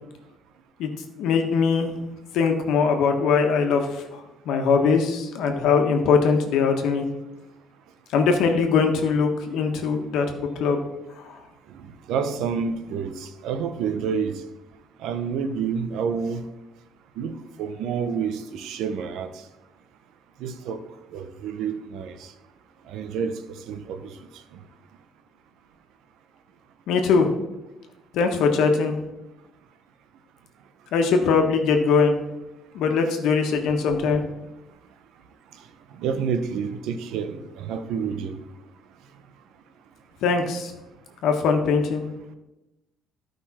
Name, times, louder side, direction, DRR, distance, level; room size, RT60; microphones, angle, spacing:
voice 1, 1.2-1.9 2.3-7.1 8.1-10.8 11.2-11.3 26.9-27.3 28.1-28.9 30.9-32.2 32.7-34.2 40.2-40.7 41.2-42.0, left 5 dB, 80° left, 1.4 m, -21 dB
voice 2, 11.7-14.4 15.0-16.4 17.2-19.4 20.4-20.8 21.1-22.3 22.9-23.3 23.7-24.1 35.9-38.4, right 6 dB, 85° right, 0.9 m, -29 dB
13.0 x 5.3 x 4.3 m
cardioid pair, 170°, 0 cm